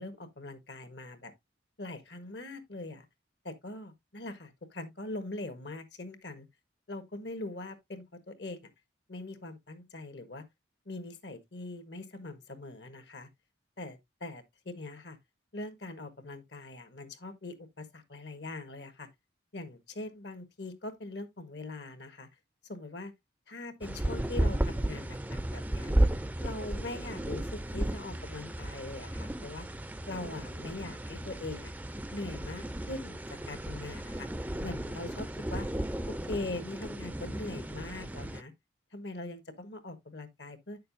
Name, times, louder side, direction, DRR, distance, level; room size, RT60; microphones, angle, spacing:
voice 1, 0.0-1.3 1.8-3.0 3.4-6.5 6.9-8.7 9.1-10.4 10.8-13.3 13.8-15.2 15.5-19.1 19.5-22.3 22.7-23.1 23.5-25.9 26.4-29.7 30.1-31.7 32.1-33.2 33.5-34.3 34.6-35.7 36.1-38.5 38.9-40.8, left 2 dB, 65° left, 1.4 m, -42 dB
sound 1, 23.8-38.4, right 1 dB, 10° right, 0.4 m, -34 dB
9.2 x 6.7 x 2.6 m
head